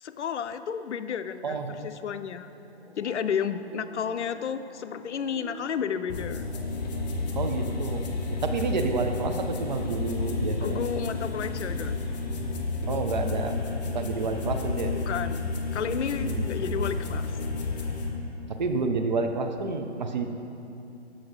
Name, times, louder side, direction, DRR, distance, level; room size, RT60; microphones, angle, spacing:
voice 1, 0.0-2.5 3.0-6.4 10.6-12.1 15.1-17.3, left 7 dB, 85° left, 11 dB, 0.5 m, -32 dB
voice 2, 1.4-1.9 7.4-8.1 8.4-10.8 12.9-13.6 13.8-14.9 16.2-16.5 18.5-20.3, right 4 dB, 40° right, 6 dB, 0.5 m, -29 dB
sound 1, 2.6-19.2, equal, 5° left, 0.6 m, -51 dB
sound 2, 6.1-18.1, left 3 dB, 40° left, 0.8 m, -31 dB
8.0 x 6.2 x 3.9 m, 2.7 s
hypercardioid pair, 155°, 34 cm